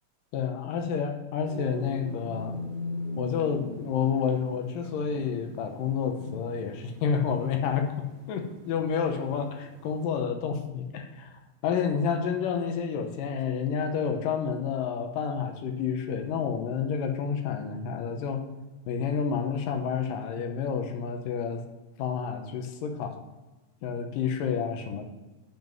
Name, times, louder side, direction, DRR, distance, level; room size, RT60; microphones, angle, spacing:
voice 1, 0.3-2.6 3.2-8.0 8.3-18.4 18.9-21.6 22.0-23.2 23.8-25.0, left 6 dB, 75° left, 5 dB, 2.6 m, -29 dB
sound 1, 1.4-10.2, left 2 dB, 65° right, 2.9 m, -41 dB
7.3 x 5.9 x 7.3 m, 1.1 s
omnidirectional pair, 4.1 m